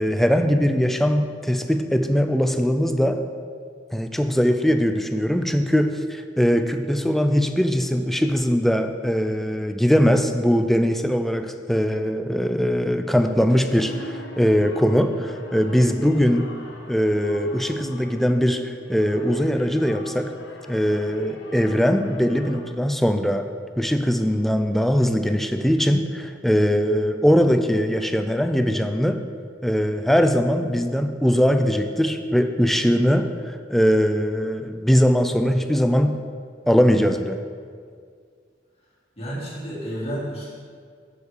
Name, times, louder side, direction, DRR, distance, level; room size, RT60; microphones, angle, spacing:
voice 1, 0.0-3.2 3.9-16.5 16.9-20.3 20.7-23.5 23.8-29.2 29.6-36.2 36.7-37.4, equal, ahead, 7 dB, 0.4 m, -21 dB
sound 1, 13.5-22.6, left 1 dB, 80° left, 0.9 m, -43 dB
voice 2, 16.0-16.3 39.2-40.5, equal, 35° left, -6 dB, 2.3 m, -32 dB
7.1 x 6.6 x 4.9 m, 2.1 s
head